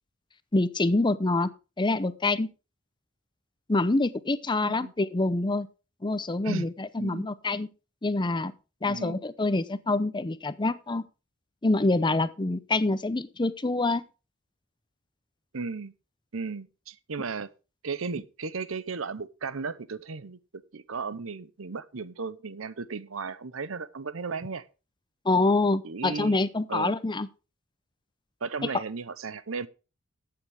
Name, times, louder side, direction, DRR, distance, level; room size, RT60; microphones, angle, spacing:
voice 1, 0.5-1.5 1.8-2.5 3.7-5.7 6.0-7.7 8.0-8.5 8.8-11.0 11.6-14.0 25.2-27.3, left 2 dB, 25° left, 0.7 m, -26 dB
voice 2, 4.6-4.9 6.4-6.7 7.0-7.3 8.9-9.2 15.5-15.9 16.3-17.5 17.8-24.6 25.8-26.4 26.7-27.0 28.4-29.7, right 4 dB, 90° right, 0.8 m, -35 dB
13.0 x 8.7 x 3.5 m
head